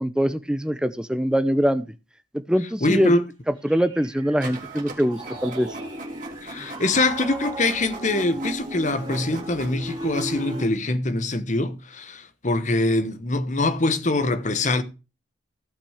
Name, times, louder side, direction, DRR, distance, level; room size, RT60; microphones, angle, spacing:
voice 1, 0.0-1.8 2.5-3.2 3.6-5.7, equal, 5° right, 0.7 m, -23 dB
voice 2, 2.8-3.2 6.4-14.8, left 2 dB, 40° left, 1.1 m, -24 dB
Piano, 3.7-10.7, right 1 dB, 25° right, 2.5 m, -35 dB
Printer, 4.4-10.7, right 3 dB, 40° right, 2.9 m, -41 dB
15.5 x 5.9 x 4.9 m
head